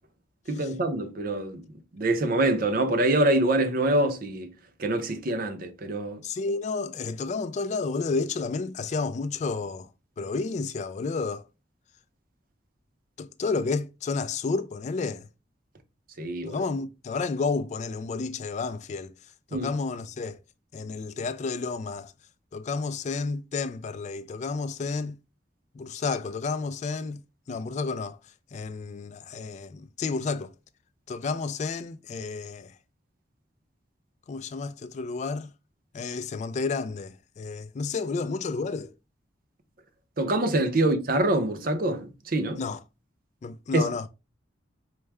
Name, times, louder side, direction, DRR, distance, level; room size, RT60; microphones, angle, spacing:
voice 1, 0.5-1.6 1.9-4.5 4.8-6.2 16.2-16.6 19.5-19.7 40.2-42.6 43.7-43.9, right 1 dB, 50° right, 0.6 m, -25 dB
voice 2, 6.2-9.9 10.2-11.4 13.2-15.3 16.5-19.1 19.5-20.4 20.7-22.1 22.5-25.2 25.7-27.2 27.5-28.2 28.5-30.5 31.1-32.7 34.3-35.5 35.9-38.9 40.8-40.9 42.6-42.8 43.4-44.1, left 4 dB, 40° left, 0.3 m, -31 dB
4.7 x 2.1 x 3.3 m
head